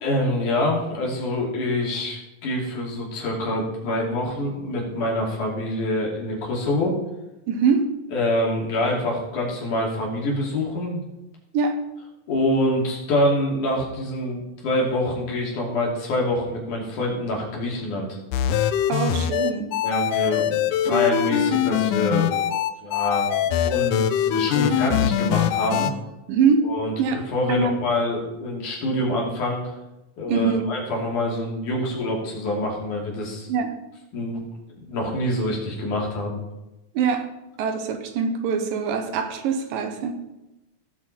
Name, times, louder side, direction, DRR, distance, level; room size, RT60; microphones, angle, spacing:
voice 1, 0.0-7.0 8.1-11.0 12.3-18.2 19.8-20.5 20.8-22.4 22.8-25.9 26.6-26.9 27.3-29.7 30.2-33.5 34.1-34.5 34.8-36.4, left 1 dB, 60° left, -2 dB, 4.0 m, -25 dB
voice 2, 7.5-7.9 11.5-11.8 18.9-19.7 20.8-21.0 26.3-26.7 27.0-27.2 27.5-27.8 30.3-30.7 33.5-33.7 36.9-37.2 37.6-40.2, right 6 dB, 80° right, 6 dB, 2.7 m, -23 dB
sound 1, 18.3-25.9, left 10 dB, 80° left, 1.9 m, -22 dB
17.0 x 7.8 x 4.2 m, 0.98 s
omnidirectional pair, 4.0 m